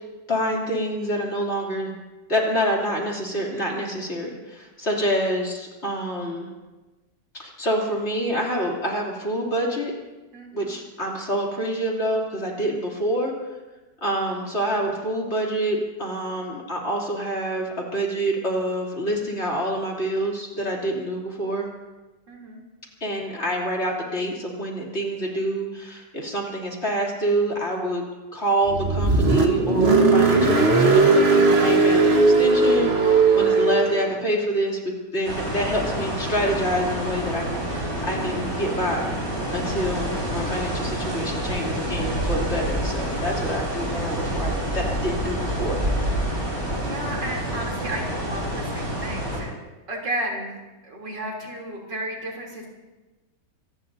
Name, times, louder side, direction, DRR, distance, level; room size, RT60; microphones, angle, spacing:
voice 1, 0.3-1.9 2.3-6.5 7.4-9.9 10.5-13.3 14.0-21.7 23.0-28.0 28.3-34.8 35.1-39.1 39.5-45.8, right 1 dB, 35° left, -2 dB, 3.4 m, -27 dB
voice 2, 10.3-10.7 22.3-22.6 46.8-49.5 49.9-50.6 50.8-52.7, right 1 dB, 80° right, -1 dB, 4.1 m, -33 dB
Car, 28.7-34.1, right 3 dB, 40° right, 1.5 m, -18 dB
sound 1, 35.2-49.4, right 1 dB, 55° right, 5.8 m, -28 dB
25.5 x 19.0 x 2.8 m, 1.2 s
omnidirectional pair, 1.9 m